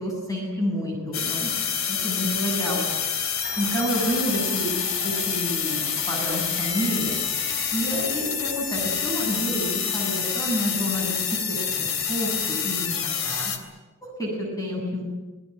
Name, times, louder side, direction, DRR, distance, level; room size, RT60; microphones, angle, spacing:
voice 1, 0.0-2.8 3.6-7.1 7.7-12.9 13.2-13.5 14.0-15.0, equal, 20° left, -1 dB, 7.3 m, -29 dB
sound 1, 1.1-13.6, left 7 dB, 85° left, 3.1 m, -27 dB
sound 2, 3.4-9.7, right 4 dB, 40° right, 5.3 m, -44 dB
Piano, 6.6-7.6, left 1 dB, 50° left, 7.7 m, -42 dB
27.0 x 19.0 x 9.2 m, 1.2 s
head